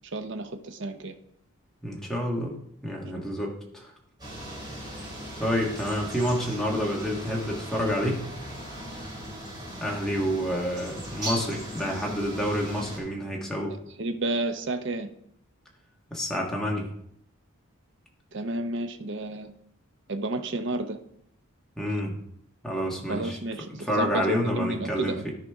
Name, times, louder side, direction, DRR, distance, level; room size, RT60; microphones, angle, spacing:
voice 1, 0.1-1.1 3.1-3.2 14.0-15.1 18.3-19.5 20.1-21.0 23.1-25.3, right 2 dB, 55° right, 8 dB, 0.7 m, -31 dB
voice 2, 1.8-2.6 2.8-3.9 4.9-5.1 5.4-8.2 9.8-13.8 16.1-16.9 21.8-22.2 22.6-23.4 23.8-25.3, equal, ahead, -2 dB, 1.4 m, -28 dB
sound 1, 4.2-13.0, equal, 20° right, 2.5 m, -38 dB
13.0 x 5.1 x 3.5 m, 0.71 s
head